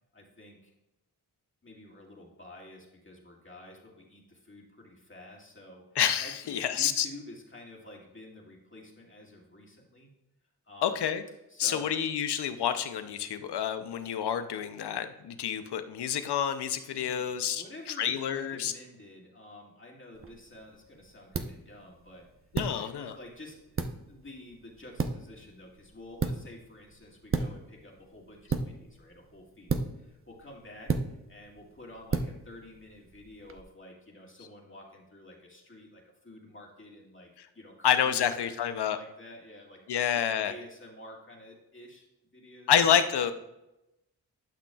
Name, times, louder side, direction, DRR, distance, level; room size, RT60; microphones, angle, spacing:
voice 1, 0.1-0.7 1.6-5.8 6.2-10.1 10.7-11.0 11.5-12.0 16.9-22.3 22.7-30.9 31.3-37.3 37.5-42.1 42.3-42.7, left 1 dB, 30° left, -1 dB, 2.2 m, -50 dB
voice 2, 6.0-7.1 10.8-11.2 11.6-17.6 18.0-18.7 22.5-23.2 37.8-39.0 39.9-40.5 42.7-43.3, left 9 dB, 80° left, 10 dB, 0.7 m, -28 dB
sound 1, 20.1-33.6, right 4 dB, 35° right, 0.7 m, -36 dB
11.5 x 6.0 x 2.4 m, 0.91 s
cardioid pair, 40°, 40 cm